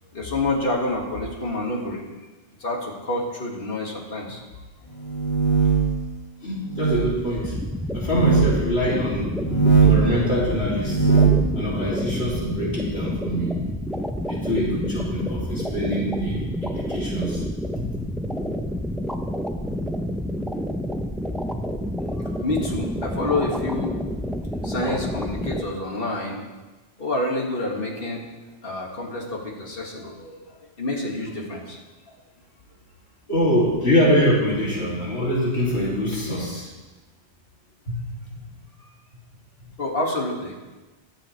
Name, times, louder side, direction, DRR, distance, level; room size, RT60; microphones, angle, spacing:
voice 1, 0.1-2.1 2.6-4.4 22.3-23.9 24.6-26.4 27.0-28.3 28.6-31.8 32.1-32.2 38.8-38.9 39.8-40.6, left 2 dB, 60° left, -1 dB, 2.2 m, -28 dB
sound 1, 5.0-6.0 6.7-7.1 8.1-8.5 9.4-10.1 10.7-11.5, right 5 dB, 30° left, 2.1 m, -19 dB
voice 2, 6.4-7.6 7.9-9.3 9.8-11.1 11.6-13.6 14.3-17.4 17.7-17.9 18.2-18.3 33.3-36.7 37.9-38.4, equal, 75° left, -6 dB, 3.0 m, -24 dB
sound 2, 7.2-25.6, equal, ahead, 0.4 m, -29 dB
23.0 x 7.7 x 3.3 m, 1.2 s
omnidirectional pair, 1.1 m